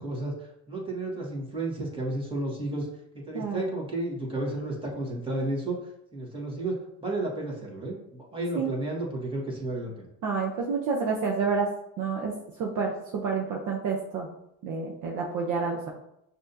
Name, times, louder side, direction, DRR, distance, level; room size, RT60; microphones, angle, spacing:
voice 1, 0.0-2.9 3.1-5.8 6.1-10.1, right 2 dB, 10° right, -3 dB, 1.6 m, -32 dB
voice 2, 10.2-11.7 12.0-12.3 12.6-14.3 14.6-15.9, right 5 dB, 45° right, -1 dB, 0.8 m, -29 dB
6.0 x 2.8 x 2.7 m, 0.78 s
supercardioid pair, 95°, 42 cm